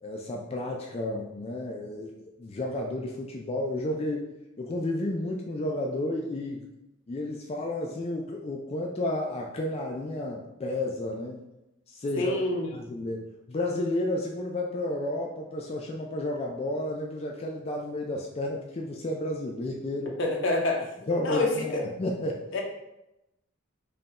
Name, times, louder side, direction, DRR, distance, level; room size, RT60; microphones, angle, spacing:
voice 1, 0.0-4.3 4.6-6.7 7.1-11.4 11.9-12.4 12.7-20.1 21.1-22.4, left 1 dB, 30° left, 0 dB, 0.3 m, -32 dB
voice 2, 12.2-12.7 20.2-20.9 21.2-21.8 22.5-22.6, left 2 dB, 65° left, 0 dB, 0.8 m, -27 dB
5.2 x 2.3 x 2.9 m, 0.90 s
head